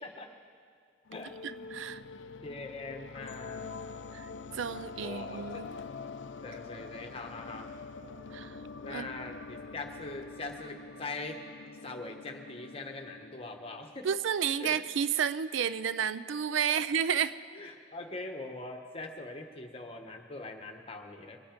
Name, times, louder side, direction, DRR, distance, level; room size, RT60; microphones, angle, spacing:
sound 1, 1.1-14.0, left 4 dB, 65° left, 0.5 m, -45 dB
voice 1, 1.4-2.0 4.1-4.3 4.5-5.7 8.3-8.6 8.9-9.1 14.0-17.4, right 8 dB, 70° right, 14 dB, 0.4 m, -31 dB
voice 2, 2.4-3.7 5.0-5.6 6.4-7.7 8.8-11.4 11.8-14.0 14.6-14.8 16.7-16.8 17.5-21.4, left 3 dB, 30° left, 4 dB, 1.1 m, -42 dB
22.5 x 8.8 x 5.1 m, 2.2 s
head